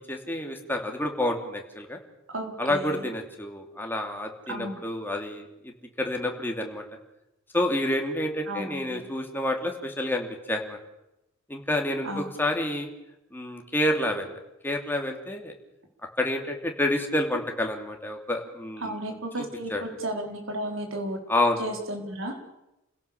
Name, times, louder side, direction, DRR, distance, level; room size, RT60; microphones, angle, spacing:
voice 1, 0.1-2.0 2.6-5.7 6.0-6.8 7.5-10.8 11.5-12.9 13.3-14.4 14.6-15.5 16.2-19.0 19.7-19.8 21.3-21.6, left 1 dB, 10° left, 2 dB, 2.9 m, -28 dB
voice 2, 2.3-3.0 4.5-4.8 8.5-9.0 12.0-12.3 18.8-21.2 21.6-22.6, right 1 dB, 70° right, 4 dB, 4.6 m, -34 dB
29.5 x 16.5 x 7.1 m, 0.91 s
head